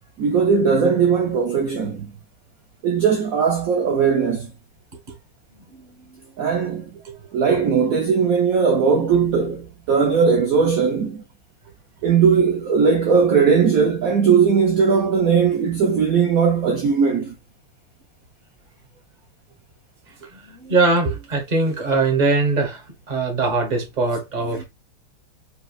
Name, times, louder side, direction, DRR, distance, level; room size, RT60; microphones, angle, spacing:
voice 1, 0.2-2.1 2.8-4.5 6.4-6.8 7.3-11.2 12.0-17.3, right 6 dB, 65° right, 0.8 m, -18 dB
voice 2, 20.3-24.6, right 3 dB, 25° right, 1.0 m, -21 dB
5.4 x 3.2 x 2.4 m
omnidirectional pair, 2.3 m